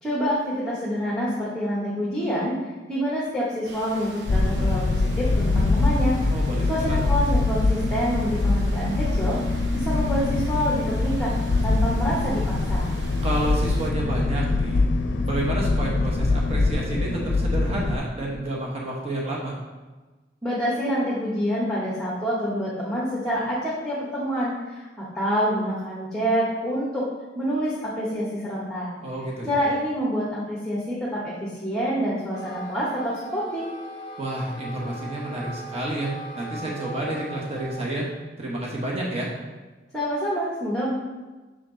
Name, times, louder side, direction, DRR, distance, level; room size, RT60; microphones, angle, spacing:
voice 1, 0.0-2.6 2.9-6.2 6.7-11.3 11.6-12.9 20.4-27.1 27.3-28.9 29.5-33.7 39.9-40.9, equal, 5° left, -7 dB, 1.1 m, -27 dB
sound 1, 3.7-13.9, right 2 dB, 75° right, 0.8 m, -43 dB
sound 2, 4.3-18.0, left 3 dB, 80° left, 0.5 m, -23 dB
voice 2, 6.3-6.9 13.2-14.9 15.3-19.6 29.0-29.5 34.2-38.1 38.4-39.3, right 1 dB, 35° right, -3 dB, 1.1 m, -29 dB
Wind instrument woodwind instrument, 32.2-37.9, right 1 dB, 25° left, 1.1 m, -39 dB
6.3 x 4.4 x 3.8 m, 1.2 s
head